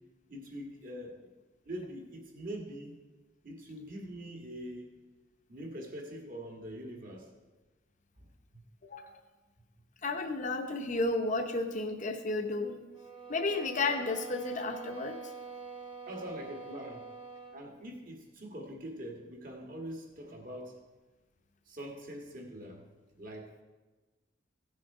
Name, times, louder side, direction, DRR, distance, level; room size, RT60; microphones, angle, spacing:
voice 1, 0.3-1.2 1.7-3.0 3.4-4.9 5.5-7.3 16.1-17.1 17.5-20.8 21.7-22.8 23.2-23.5, equal, 45° right, 1 dB, 1.7 m, -43 dB
voice 2, 8.8-9.1 10.0-12.8 13.3-15.2, left 3 dB, 40° left, 4 dB, 0.8 m, -32 dB
sound 1, 12.9-17.7, right 4 dB, 25° right, 1.4 m, -45 dB
16.0 x 6.4 x 4.8 m, 1.2 s
head